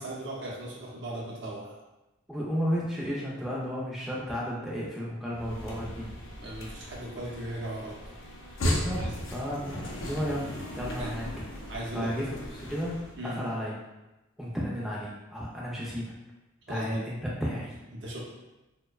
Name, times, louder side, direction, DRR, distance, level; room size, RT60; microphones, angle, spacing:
voice 1, 0.0-1.8 6.4-8.0 9.0-9.1 11.0-11.1 11.7-12.1 13.1-13.4 16.7-17.0 17.9-18.2, right 1 dB, 55° right, -4 dB, 0.6 m, -37 dB
voice 2, 2.3-6.1 8.6-11.3 11.9-12.4 12.7-13.0 13.2-13.7 14.4-16.1 16.7-17.8, equal, ahead, -6 dB, 0.3 m, -33 dB
sound 1, 5.3-13.2, left 1 dB, 65° left, 0.4 m, -36 dB
2.6 x 2.1 x 2.3 m, 1.0 s
head